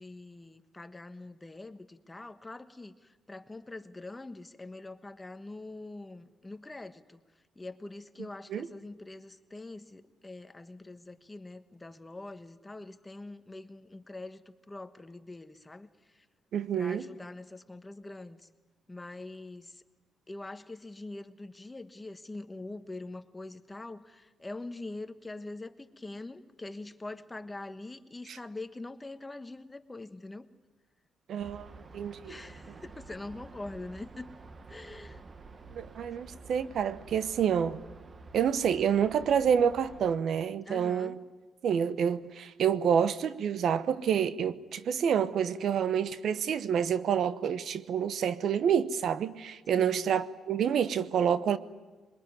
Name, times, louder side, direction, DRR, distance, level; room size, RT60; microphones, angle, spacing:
voice 1, 0.0-7.2 7.5-16.2 16.7-18.5 18.9-19.8 20.3-30.5 32.2-34.3 34.7-35.2 40.6-41.2 49.8-50.1, left 2 dB, 15° left, 1.3 m, -44 dB
voice 2, 16.5-17.0 28.3-28.4 31.3-32.4 35.7-37.8 38.3-41.2 41.6-51.6, right 8 dB, 65° right, 1.0 m, -28 dB
sound 1, 31.4-40.2, right 3 dB, 35° right, 1.3 m, -50 dB
22.5 x 21.5 x 9.7 m
cardioid pair, 90°, 0 cm